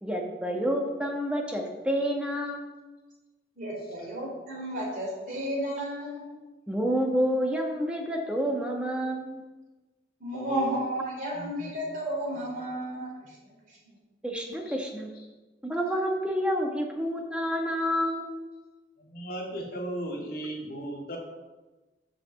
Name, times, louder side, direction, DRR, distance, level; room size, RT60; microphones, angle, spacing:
voice 1, 0.0-2.6 6.7-9.4 14.2-15.1 15.6-18.4, equal, 5° right, 1 dB, 1.2 m, -29 dB
voice 2, 3.6-6.2 10.2-13.3, right 1 dB, 45° right, -3 dB, 3.2 m, -32 dB
voice 3, 10.3-10.7 11.3-11.7 14.7-14.8 19.0-21.2, right 1 dB, 55° left, 0 dB, 1.9 m, -37 dB
6.9 x 6.2 x 7.0 m, 1.2 s
head